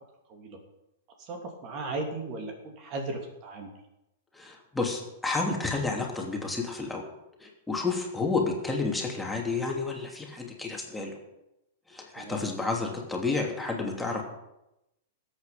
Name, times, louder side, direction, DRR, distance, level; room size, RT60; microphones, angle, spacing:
voice 1, 1.2-3.7 12.2-12.4, right 2 dB, 35° right, 3 dB, 2.8 m, -36 dB
voice 2, 4.3-7.0 7.4-11.1 11.9-14.2, left 3 dB, 5° left, 0 dB, 3.1 m, -30 dB
21.0 x 8.8 x 5.3 m, 0.90 s
figure-of-eight pair, 100°, 0 cm